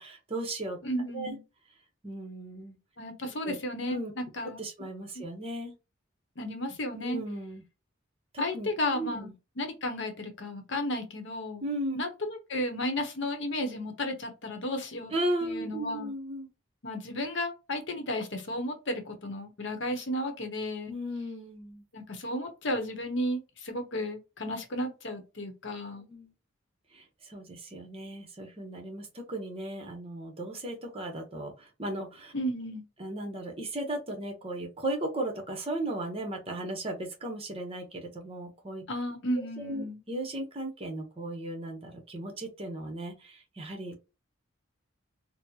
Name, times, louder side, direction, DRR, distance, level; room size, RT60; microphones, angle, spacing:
voice 1, 0.0-0.8 1.1-1.4 2.0-2.8 3.4-3.5 3.8-4.1 4.6-5.8 7.0-7.6 8.3-8.7 8.9-9.3 11.6-12.0 15.1-16.5 20.9-21.8 25.9-26.3 26.9-32.3 33.0-38.8 39.6-44.0, right 1 dB, 30° right, 0.9 m, -36 dB
voice 2, 0.8-1.4 3.0-4.6 5.1-5.2 6.4-7.2 8.4-11.7 11.9-15.1 15.4-16.1 16.8-20.9 21.9-26.1 32.3-32.8 38.9-40.0, left 1 dB, 60° left, 0.8 m, -33 dB
4.1 x 2.1 x 2.8 m
head